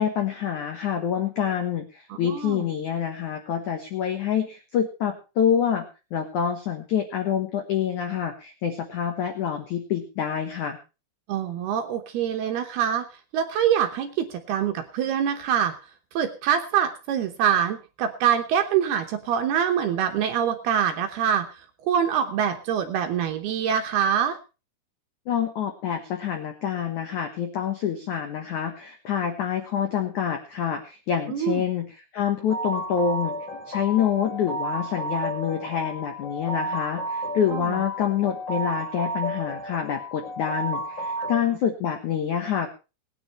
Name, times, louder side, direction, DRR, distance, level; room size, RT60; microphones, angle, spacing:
voice 1, 0.0-5.8 6.1-10.8 25.3-31.9 32.1-33.3 33.7-42.7, left 8 dB, 85° left, 6 dB, 1.7 m, -27 dB
voice 2, 2.1-2.7 11.3-13.1 13.3-15.7 16.1-21.5 21.8-24.4 31.3-31.6 37.5-37.6 41.2-41.3, right 8 dB, 70° right, 6 dB, 2.6 m, -24 dB
sound 1, 32.5-41.4, right 1 dB, 30° left, 2.3 m, -32 dB
18.5 x 9.9 x 4.3 m, 0.31 s
omnidirectional pair, 5.6 m